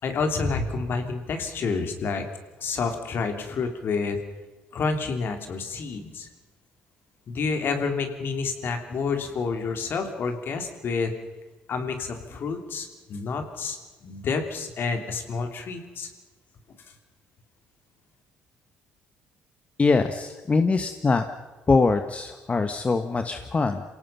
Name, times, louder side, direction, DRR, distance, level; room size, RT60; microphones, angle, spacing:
voice 1, 0.0-2.2 2.6-4.2 4.7-6.3 7.3-11.1 11.7-16.1, left 4 dB, 55° left, 5 dB, 3.2 m, -29 dB
voice 2, 19.8-21.2 21.7-23.8, left 4 dB, 30° left, 7 dB, 1.4 m, -23 dB
27.0 x 17.5 x 5.7 m, 1.2 s
supercardioid pair, 65°, 4 cm